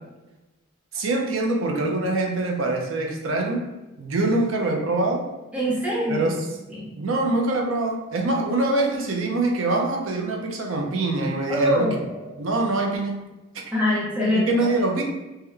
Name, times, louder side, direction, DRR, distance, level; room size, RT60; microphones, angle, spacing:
voice 1, 0.9-3.6 4.0-5.2 6.1-6.4 7.0-12.0 12.4-13.2 14.3-15.0, right 2 dB, 75° right, 1 dB, 0.6 m, -24 dB
voice 2, 5.5-6.4 6.7-6.9 11.5-12.3 13.7-14.7, left 1 dB, 5° right, -7 dB, 0.8 m, -24 dB
3.6 x 2.2 x 3.2 m, 1.1 s
head